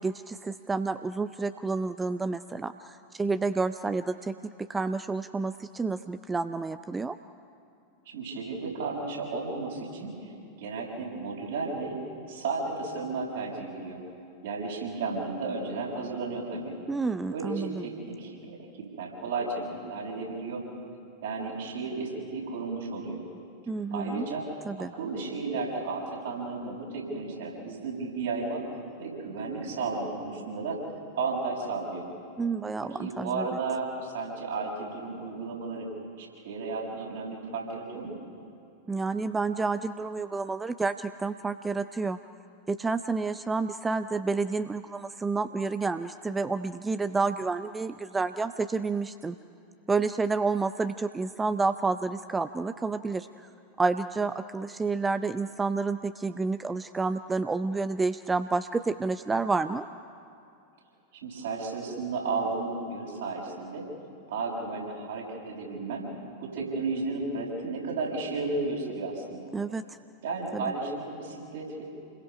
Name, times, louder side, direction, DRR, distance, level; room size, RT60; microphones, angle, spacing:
voice 1, 0.0-7.2 16.9-17.8 23.7-24.3 24.7-24.9 32.4-33.5 38.9-42.2 42.7-49.4 49.9-53.5 53.8-59.9 69.5-69.8 70.5-70.6, right 4 dB, 10° right, 11 dB, 0.5 m, -29 dB
voice 2, 8.1-10.1 10.6-12.0 12.3-14.0 14.4-16.7 17.3-18.6 19.0-20.6 21.2-23.2 23.9-24.4 24.8-28.6 29.0-30.8 31.1-32.1 33.0-35.9 36.2-38.2 61.2-63.8 64.3-66.0 66.4-69.5 70.2-71.8, right 3 dB, 60° right, -2 dB, 6.6 m, -33 dB
29.0 x 21.5 x 5.6 m, 2.6 s
figure-of-eight pair, 90°, 0 cm